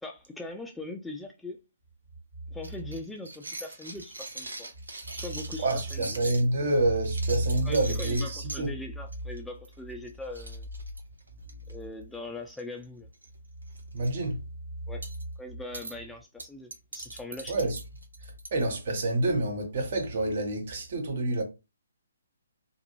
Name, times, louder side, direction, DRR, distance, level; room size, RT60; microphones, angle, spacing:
voice 1, 0.0-1.6 2.5-4.7 5.1-6.2 7.6-10.7 11.7-13.1 14.9-15.1 15.4-17.6, left 2 dB, 5° left, 0.3 m, -41 dB
sound 1, 2.6-6.5 7.0-8.6 9.1-9.4 9.6-9.8 10.1-10.2 10.3-11.7 12.5-12.8 13.1-13.3 13.7-14.1 15.0-15.2 15.7-15.9 16.4-18.6, right 2 dB, 85° right, 0.8 m, -41 dB
voice 2, 5.6-8.7 13.9-14.4 17.5-17.8 18.2-21.4, right 2 dB, 50° right, 1.0 m, -27 dB
2.6 x 2.5 x 2.9 m
hypercardioid pair, 140°, 0 cm